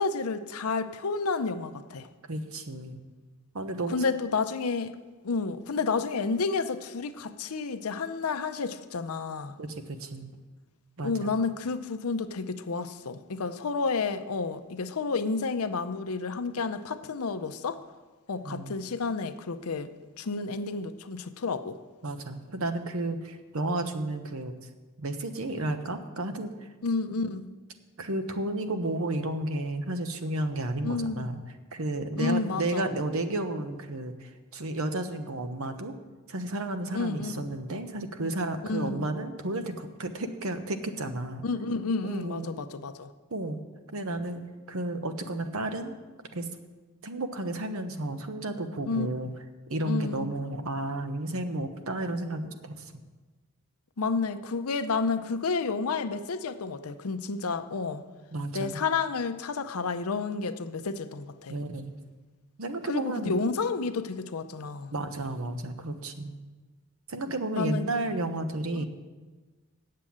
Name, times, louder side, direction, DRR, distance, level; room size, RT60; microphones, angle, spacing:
voice 1, 0.0-2.1 3.9-4.9 5.2-9.5 11.0-17.8 18.3-19.9 20.2-21.8 26.8-27.5 30.8-31.2 32.2-32.9 36.9-37.3 38.7-39.1 41.4-43.1 48.9-49.1 49.9-50.3 54.0-58.0 58.5-61.5 62.9-64.9 67.6-67.9, left 4 dB, 80° left, 11 dB, 0.6 m, -30 dB
voice 2, 2.3-3.0 3.5-4.1 9.6-10.3 11.0-11.4 18.4-18.8 22.0-24.5 25.0-26.7 28.0-31.4 31.7-35.9 36.3-41.5 42.0-42.5 43.3-43.6 43.9-44.4 44.7-45.9 46.3-46.5 47.0-49.3 49.7-52.9 58.3-58.8 61.5-61.9 62.6-63.4 64.9-66.3 67.1-68.9, right 2 dB, 70° right, 8 dB, 0.9 m, -32 dB
7.6 x 7.6 x 8.6 m, 1.3 s
head